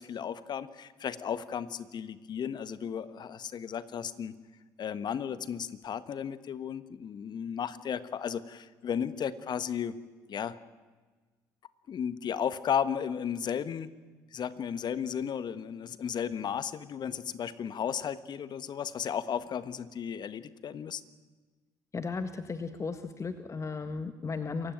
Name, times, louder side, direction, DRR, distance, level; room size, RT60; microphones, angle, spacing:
voice 1, 0.0-4.3 4.8-9.9 10.3-10.6 11.9-13.9 14.3-21.0, left 8 dB, 50° left, 14 dB, 1.4 m, -34 dB
voice 2, 21.9-24.7, left 4 dB, 30° left, 9 dB, 1.6 m, -35 dB
27.5 x 16.0 x 9.2 m, 1.4 s
hypercardioid pair, 60°, 9 cm